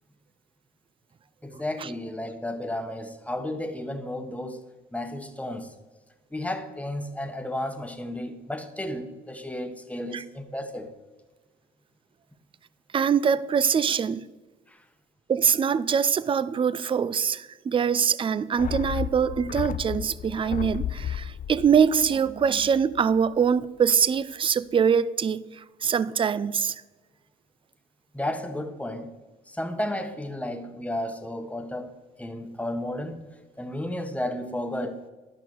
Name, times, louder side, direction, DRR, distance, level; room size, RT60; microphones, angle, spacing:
voice 1, 1.4-4.6 4.9-5.7 6.3-10.9 28.1-29.1 29.5-31.9 32.2-33.2 33.6-35.0, left 1 dB, 5° left, 1.1 m, -33 dB
voice 2, 12.9-14.2 15.3-25.5 25.8-26.7, right 7 dB, 25° right, 0.4 m, -23 dB
sound 1, 18.6-23.2 23.4-23.5, left 10 dB, 45° left, 0.4 m, -34 dB
12.0 x 5.8 x 4.5 m
cardioid pair, 90°, 20 cm